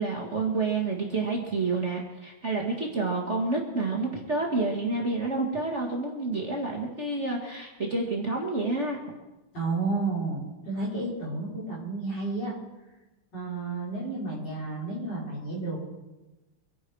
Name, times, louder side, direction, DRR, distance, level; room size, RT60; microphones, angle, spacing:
voice 1, 0.0-9.0, right 3 dB, 35° right, -1 dB, 2.0 m, -29 dB
voice 2, 9.5-12.5 13.3-15.8, right 3 dB, 50° left, -5 dB, 6.0 m, -31 dB
25.0 x 10.5 x 4.7 m, 1.1 s
omnidirectional pair, 2.4 m